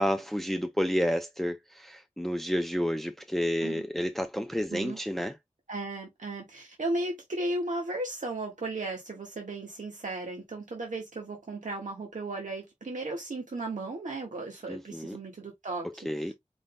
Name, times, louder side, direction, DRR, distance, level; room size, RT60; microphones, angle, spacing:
voice 1, 0.0-5.4 14.7-15.2 16.0-16.3, equal, ahead, 0.6 m, -30 dB
voice 2, 5.7-15.9, right 2 dB, 80° right, 1.6 m, -35 dB
5.1 x 3.9 x 2.2 m
wide cardioid pair, 55°, 13 cm